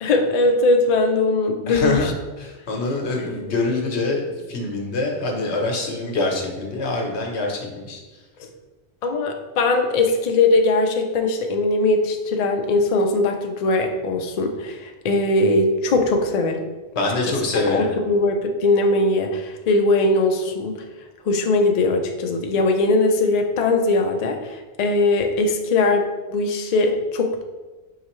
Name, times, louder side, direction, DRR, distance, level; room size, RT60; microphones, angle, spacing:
voice 1, 0.0-2.1 3.2-3.5 8.4-8.5 9.0-16.7 17.7-20.8 21.2-27.4, left 2 dB, 60° left, 3 dB, 0.4 m, -20 dB
voice 2, 1.7-8.0 16.9-18.0, left 2 dB, 75° left, 1 dB, 1.1 m, -25 dB
4.8 x 3.2 x 3.0 m, 1.2 s
omnidirectional pair, 1.2 m